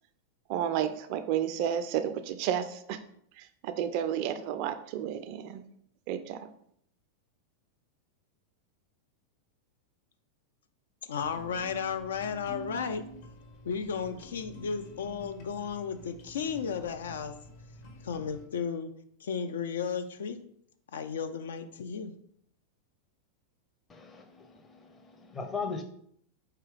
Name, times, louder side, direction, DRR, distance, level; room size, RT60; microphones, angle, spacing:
voice 1, 0.5-3.0 3.4-5.6 6.1-6.5, right 9 dB, 45° right, 0.3 m, -31 dB
voice 2, 11.1-13.0 13.6-17.3 18.0-18.9 19.2-20.4 20.9-22.1, left 6 dB, 65° left, 0.3 m, -34 dB
sound 1, 11.2-18.4, equal, 45° left, 1.0 m, -48 dB
voice 3, 23.9-25.8, left 5 dB, 20° left, 0.7 m, -38 dB
4.6 x 2.8 x 3.4 m
figure-of-eight pair, 90°, 0 cm